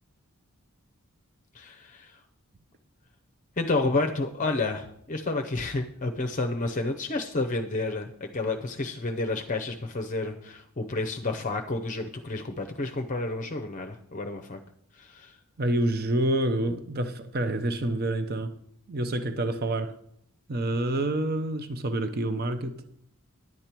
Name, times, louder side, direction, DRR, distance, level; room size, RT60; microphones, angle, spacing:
voice 1, 1.5-2.1 3.6-14.6 15.0-15.3, left 2 dB, 35° left, 0.6 m, -30 dB
voice 2, 15.6-18.5 18.9-20.0 20.5-22.8, right 1 dB, 45° right, 0.7 m, -27 dB
10.5 x 8.4 x 4.5 m
head